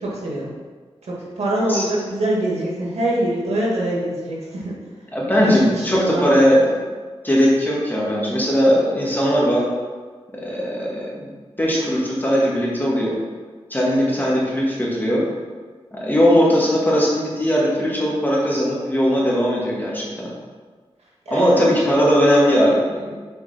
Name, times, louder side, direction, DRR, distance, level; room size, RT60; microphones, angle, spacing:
voice 1, 0.0-0.5 1.1-4.7 5.4-6.3 21.3-21.8, right 1 dB, 90° right, -4 dB, 2.0 m, -23 dB
voice 2, 5.1-6.8 7.2-9.6 10.4-11.3 11.6-13.2 13.7-15.3 15.9-20.3 21.3-23.1, equal, 15° left, -5 dB, 2.3 m, -19 dB
6.8 x 4.6 x 5.9 m, 1.5 s
wide cardioid pair, 75°, 11 cm